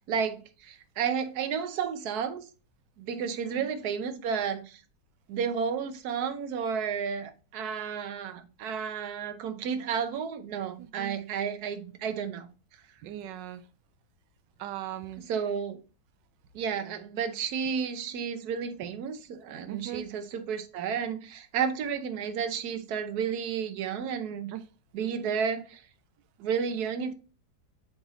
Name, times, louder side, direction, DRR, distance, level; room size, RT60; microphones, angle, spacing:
voice 1, 0.1-2.5 3.0-4.8 5.3-12.5 15.2-15.8 16.5-24.5 24.9-25.8 26.4-27.1, right 7 dB, 65° right, 1.2 m, -32 dB
voice 2, 10.8-11.2 13.0-13.6 14.6-15.2 19.7-20.1 24.5-24.6, right 12 dB, 85° right, 1.3 m, -39 dB
7.7 x 4.0 x 3.0 m
omnidirectional pair, 1.9 m